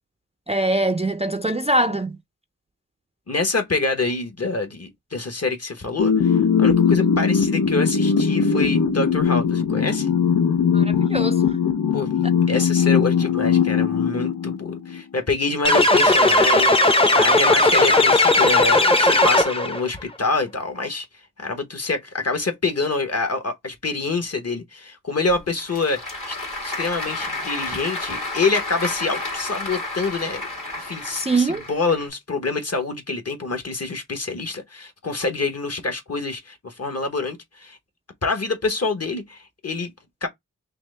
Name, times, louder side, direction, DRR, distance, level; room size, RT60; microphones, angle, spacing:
voice 1, 0.5-2.2 10.7-11.6 31.1-31.6, right 2 dB, 20° right, 0.4 m, -23 dB
voice 2, 3.3-10.1 11.9-21.1 21.4-26.4 26.6-30.4 30.8-37.8 38.2-39.9 40.2-40.3, left 3 dB, 50° left, 1.1 m, -26 dB
sound 1, 6.0-15.0, left 6 dB, 85° left, 0.6 m, -20 dB
sound 2, 15.6-19.8, left 2 dB, 15° left, 0.6 m, -16 dB
Applause / Crowd, 25.3-32.1, left 2 dB, 65° left, 2.2 m, -31 dB
5.8 x 2.0 x 3.3 m
wide cardioid pair, 75°, 33 cm